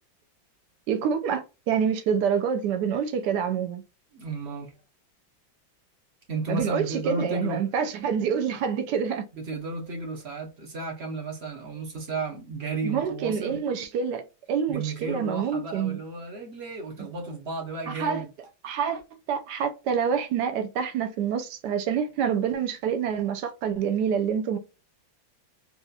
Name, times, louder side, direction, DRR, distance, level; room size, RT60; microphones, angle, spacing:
voice 1, 0.9-3.8 6.5-9.3 12.8-14.2 14.5-16.0 17.9-18.2 18.6-19.0 19.3-24.6, right 7 dB, 75° right, 1.0 m, -27 dB
voice 2, 4.1-4.7 6.3-7.6 9.3-13.6 14.7-18.3, right 3 dB, 45° right, 0.8 m, -33 dB
4.1 x 2.4 x 2.3 m
omnidirectional pair, 2.1 m